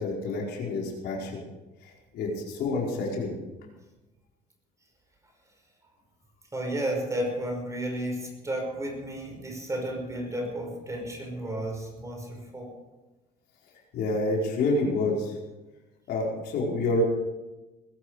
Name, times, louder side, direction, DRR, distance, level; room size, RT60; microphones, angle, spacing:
voice 1, 0.0-1.4 1.8-3.3 13.9-15.3 16.1-17.0, left 2 dB, 75° left, -2 dB, 4.8 m, -28 dB
voice 2, 6.5-12.7, right 1 dB, 20° right, 1 dB, 5.7 m, -32 dB
21.0 x 12.5 x 5.0 m, 1.1 s
cardioid pair, 110°, 17 cm